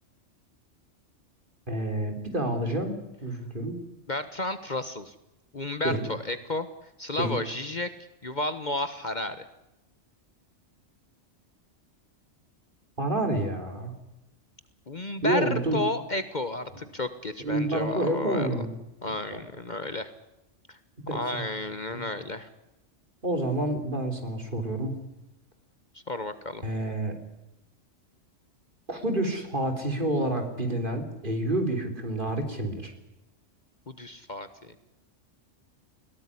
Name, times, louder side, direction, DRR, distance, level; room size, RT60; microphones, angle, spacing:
voice 1, 1.7-2.9 3.2-3.8 5.8-6.0 7.2-7.4 13.0-13.9 15.2-15.8 17.4-18.7 19.3-19.4 21.1-21.4 21.9-22.1 23.2-25.0 26.6-27.1 28.9-32.9, right 1 dB, 40° right, 6 dB, 3.7 m, -28 dB
voice 2, 4.1-5.1 5.5-6.7 7.0-7.9 8.2-9.4 14.9-18.6 19.0-20.1 20.7-20.8 21.1-22.5 26.1-26.6 33.9-34.7, left 2 dB, 40° left, 11 dB, 1.3 m, -32 dB
21.5 x 17.5 x 9.9 m, 0.91 s
omnidirectional pair, 1.3 m